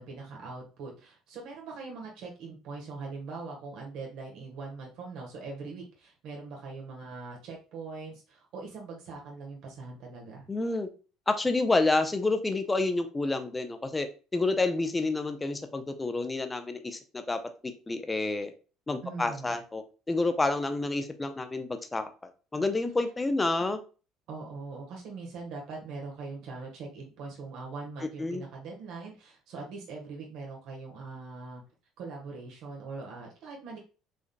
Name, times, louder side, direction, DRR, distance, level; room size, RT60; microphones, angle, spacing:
voice 1, 0.0-10.5 19.0-19.6 24.3-31.6 32.0-33.8, right 4 dB, 55° right, -1 dB, 1.4 m, -42 dB
voice 2, 10.5-10.9 11.3-14.1 14.3-17.0 17.3-18.5 18.9-22.1 22.5-23.8 28.2-28.4, left 2 dB, 15° left, 8 dB, 0.6 m, -29 dB
5.1 x 3.8 x 2.2 m, 0.34 s
figure-of-eight pair, 60°, 0 cm